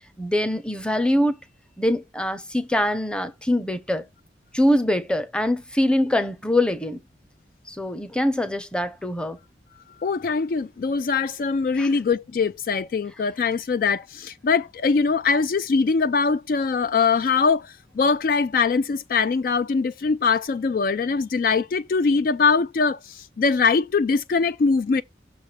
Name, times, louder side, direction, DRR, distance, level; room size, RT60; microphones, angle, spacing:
voice 1, 0.2-1.4 1.8-4.0 4.5-7.0 7.7-9.4 11.8-11.9, left 1 dB, 5° left, 0.7 m, -23 dB
voice 2, 10.0-25.0, left 4 dB, 50° left, 0.3 m, -22 dB
6.5 x 4.9 x 4.2 m
head